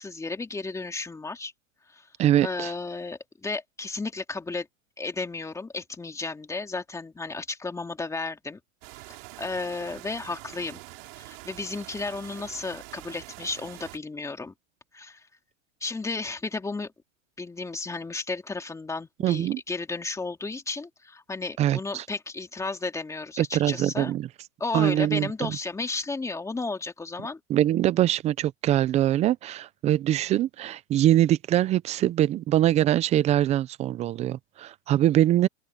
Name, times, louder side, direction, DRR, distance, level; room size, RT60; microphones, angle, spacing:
voice 1, 0.0-1.5 1.9-2.1 2.4-4.7 5.0-8.6 9.4-10.8 11.1-14.5 14.9-15.3 15.8-16.9 17.4-24.1 24.6-27.4, left 3 dB, 10° left, 2.5 m, -33 dB
voice 2, 2.2-2.7 19.2-19.6 21.6-22.0 23.4-24.3 24.7-25.5 27.5-35.5, right 12 dB, 20° right, 0.5 m, -23 dB
sound 1, 8.8-14.0, right 29 dB, 50° right, 5.6 m, -45 dB
open air
supercardioid pair, 140°, 38 cm